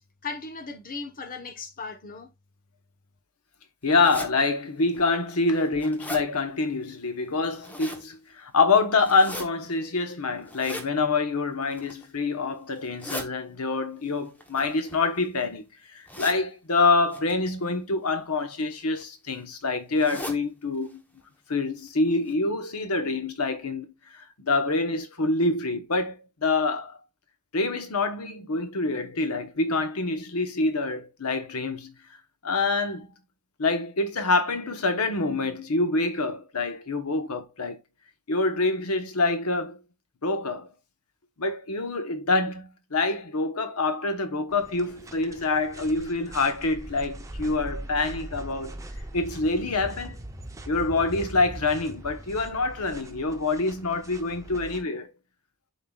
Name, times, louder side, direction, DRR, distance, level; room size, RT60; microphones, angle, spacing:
voice 1, 0.2-2.3, left 4 dB, 40° left, 1.0 m, -37 dB
voice 2, 3.8-15.6 15.9-21.0 21.5-27.0 27.5-31.9 32.4-33.1 33.6-37.8 38.3-39.8 40.2-40.7 41.4-48.8 49.1-50.2 50.7-55.1, left 3 dB, 80° left, 1.1 m, -26 dB
sound 1, 4.0-4.3 4.9-5.0 5.5-6.2 7.4-8.0 9.0-9.5 10.5-10.9 11.6-12.0 12.8-13.3 14.4-15.4 16.1-16.4 17.1-17.3 18.3-18.6 19.0-19.1 19.3-19.4 20.0-20.4 20.8-20.9 21.2-21.3 21.9-22.0 22.3-22.4, left 1 dB, 5° left, 1.0 m, -38 dB
sound 2, 44.5-54.8, right 1 dB, 15° right, 0.7 m, -41 dB
11.0 x 3.8 x 2.4 m
head